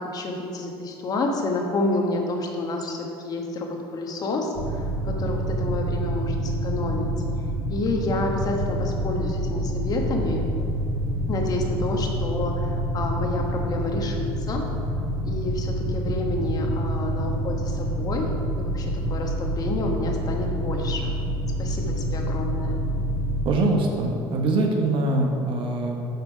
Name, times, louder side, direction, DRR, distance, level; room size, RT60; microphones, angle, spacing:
voice 1, 0.0-7.1 7.4-10.5 11.3-14.7 15.2-18.3 18.6-21.1 21.6-22.8, left 2 dB, 35° left, 1 dB, 1.1 m, -29 dB
sound 1, 4.6-23.4, right 1 dB, 85° right, 1.9 m, -27 dB
voice 2, 23.4-26.0, right 2 dB, 50° right, 1 dB, 1.2 m, -23 dB
7.2 x 5.9 x 5.1 m, 2.8 s
cardioid pair, 130°, 11 cm